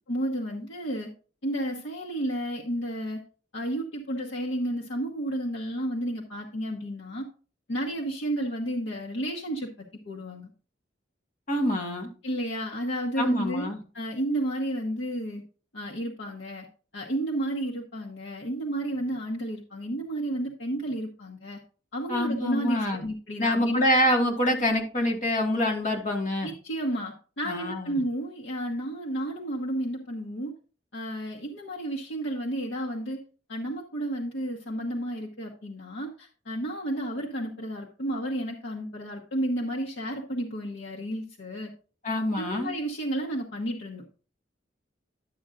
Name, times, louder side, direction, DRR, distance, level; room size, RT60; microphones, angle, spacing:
voice 1, 0.1-1.1 1.4-3.2 3.5-7.3 7.7-9.7 10.1-10.5 12.2-13.7 13.9-15.4 15.7-16.7 16.9-21.6 21.9-23.9 26.4-30.5 30.9-33.2 33.5-41.7 42.3-44.0, right 1 dB, 90° left, -1 dB, 1.1 m, -32 dB
voice 2, 11.5-12.1 13.2-13.8 22.1-23.0 23.4-26.5 27.5-28.0 42.0-42.7, left 1 dB, 45° left, 2 dB, 1.8 m, -26 dB
11.0 x 7.4 x 2.5 m, 0.37 s
head